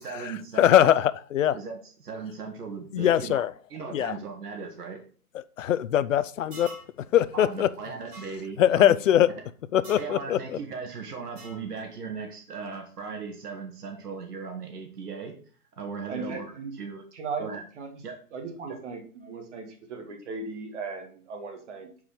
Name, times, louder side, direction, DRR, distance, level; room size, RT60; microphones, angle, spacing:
voice 1, 0.0-1.0 1.5-3.4 3.7-5.0 7.3-8.9 10.0-15.4 15.7-17.0 17.4-17.7 18.0-18.2 18.7-18.8, right 5 dB, 85° right, 3 dB, 1.8 m, -37 dB
voice 2, 0.6-1.6 2.9-3.5 3.9-4.1 5.6-6.7 7.1-7.7 8.6-9.3 9.7-10.4, left 11 dB, 60° left, 15 dB, 0.5 m, -21 dB
sound 1, 6.5-6.9 8.1-8.3 9.8-10.1 11.4-11.6, right 2 dB, 20° right, 2.7 m, -44 dB
voice 3, 16.1-16.7 17.2-17.5 17.8-17.9 18.3-21.9, right 4 dB, 50° right, 4 dB, 1.9 m, -37 dB
5.1 x 4.7 x 5.7 m, 0.42 s
hypercardioid pair, 155°, 45 cm